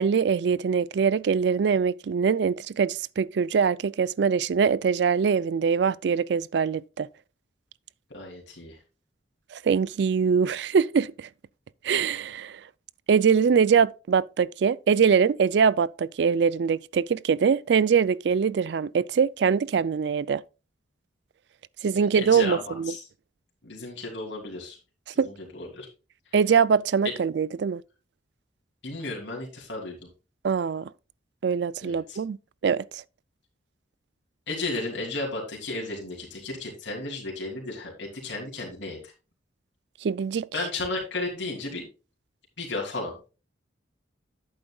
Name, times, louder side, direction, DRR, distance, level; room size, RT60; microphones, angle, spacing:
voice 1, 0.0-7.1 9.5-11.3 11.8-12.6 13.1-20.4 21.8-22.9 25.2-25.3 26.3-27.8 30.4-30.9 31.4-32.4 32.6-33.0 40.0-40.5, right 6 dB, 65° right, 0.4 m, -23 dB
voice 2, 8.1-8.8 22.2-23.0 23.6-24.8 25.2-25.9 28.8-30.0 31.8-32.2 34.5-39.1 40.5-41.8 42.6-43.1, left 2 dB, 70° left, 2.9 m, -34 dB
11.0 x 8.8 x 2.3 m
head